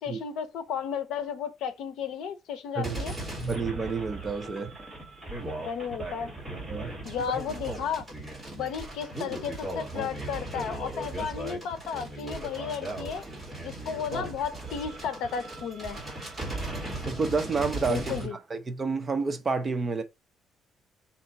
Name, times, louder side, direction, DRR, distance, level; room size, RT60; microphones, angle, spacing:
voice 1, 0.0-3.1 5.6-6.3 7.0-8.1 8.5-13.2 13.6-16.0 17.9-18.4, left 7 dB, 75° left, 0.7 m, -33 dB
sound 1, 2.8-18.3, right 1 dB, 5° right, 2.1 m, -37 dB
voice 2, 3.4-4.7 6.7-6.9 17.1-20.0, right 4 dB, 20° right, 0.6 m, -29 dB
4.4 x 2.9 x 4.0 m
cardioid pair, 175°, 0 cm